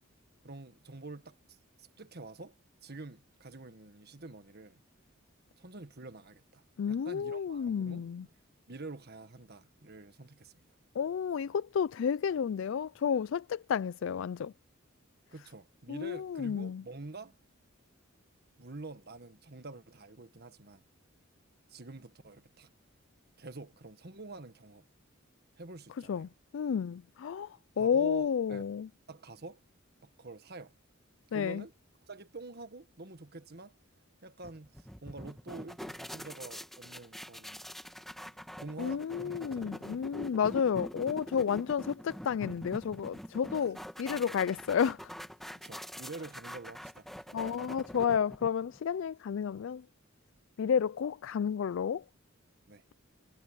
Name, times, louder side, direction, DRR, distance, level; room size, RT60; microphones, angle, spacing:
voice 1, 0.4-2.5 2.8-4.8 5.6-8.3 8.7-10.6 15.3-17.4 18.6-20.8 21.7-22.7 23.4-24.9 25.6-26.3 27.8-28.7 29.1-29.6 30.0-30.7 31.3-31.7 32.1-33.7 34.2-37.9 38.6-40.0 45.5-47.4 52.7-52.8, right 3 dB, 50° right, 1.6 m, -47 dB
voice 2, 6.8-8.3 11.0-14.5 15.9-16.8 26.1-28.9 31.3-31.6 38.8-45.1 47.3-49.8 50.6-52.0, left 7 dB, 65° left, 0.3 m, -31 dB
sound 1, 34.4-48.8, equal, ahead, 1.4 m, -45 dB
head